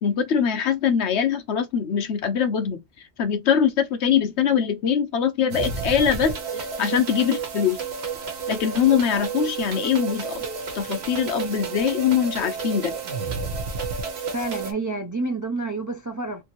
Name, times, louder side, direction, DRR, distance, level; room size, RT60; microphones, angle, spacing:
voice 1, 0.0-2.8 3.2-7.8 8.5-10.4 10.7-12.9, left 8 dB, 75° left, 1.0 m, -22 dB
sound 1, 5.5-14.7, right 5 dB, 70° right, 1.1 m, -31 dB
voice 2, 14.3-16.4, right 3 dB, 25° right, 0.4 m, -28 dB
3.4 x 2.6 x 2.8 m
omnidirectional pair, 1.1 m